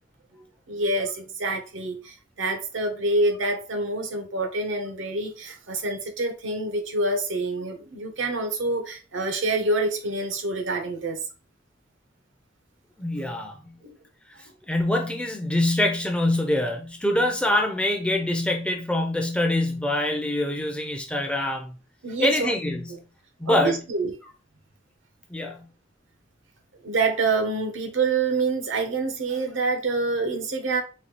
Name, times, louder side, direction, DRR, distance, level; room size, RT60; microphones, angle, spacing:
voice 1, 0.3-11.2 13.8-14.0 22.0-22.5 23.5-24.1 26.8-30.8, right 3 dB, 80° right, 0.8 m, -27 dB
voice 2, 13.0-13.6 14.7-21.7 22.2-22.9 23.4-23.8 25.3-25.7, left 1 dB, 5° left, 0.4 m, -24 dB
4.1 x 2.3 x 2.9 m
head